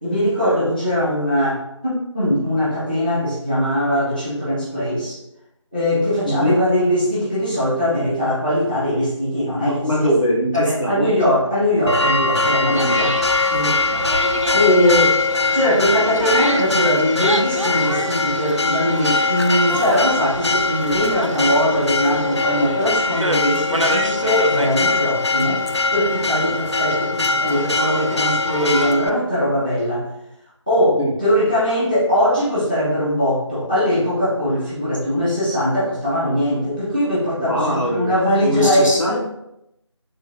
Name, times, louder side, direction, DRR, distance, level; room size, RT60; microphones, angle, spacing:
voice 1, 0.0-5.2 5.7-10.1 10.5-13.1 13.5-14.0 14.5-25.6 25.9-30.1 30.7-39.2, equal, 15° left, -11 dB, 1.0 m, -20 dB
voice 2, 6.2-6.6 9.6-11.1 12.6-13.1 31.0-31.1 37.4-38.1 38.4-39.2, equal, 75° left, -5 dB, 1.6 m, -21 dB
Church bell, 11.9-29.1, left 3 dB, 55° left, 0.4 m, -21 dB
sound 1, 12.7-28.9, right 2 dB, 70° right, 0.5 m, -30 dB
5.8 x 3.7 x 2.4 m, 0.82 s
figure-of-eight pair, 170°, 16 cm